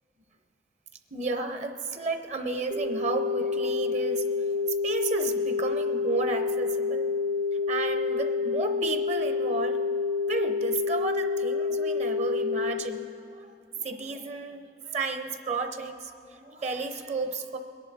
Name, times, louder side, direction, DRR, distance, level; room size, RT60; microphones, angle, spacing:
voice 1, 1.1-7.2 7.7-9.8 10.2-17.6, right 3 dB, 40° right, 7 dB, 0.7 m, -33 dB
sound 1, 2.7-12.7, left 4 dB, 85° right, 1.7 m, -28 dB
22.0 x 10.5 x 4.2 m, 2.5 s
head